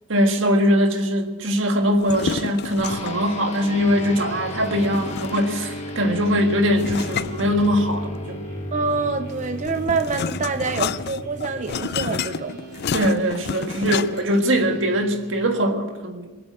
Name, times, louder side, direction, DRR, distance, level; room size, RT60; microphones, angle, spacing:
voice 1, 0.1-8.4 12.9-16.4, equal, 75° right, 5 dB, 1.7 m, -21 dB
sound 1, 1.9-3.3 4.8-5.7 6.8-8.2 9.3-14.4, left 7 dB, 55° left, 0.4 m, -30 dB
sound 2, 2.8-12.6, left 1 dB, 35° left, 1.3 m, -35 dB
sound 3, 3.6-15.5, right 1 dB, 55° right, 2.9 m, -42 dB
voice 2, 8.7-12.6, right 4 dB, 40° right, 9 dB, 0.5 m, -26 dB
23.0 x 7.7 x 7.6 m, 1.3 s
head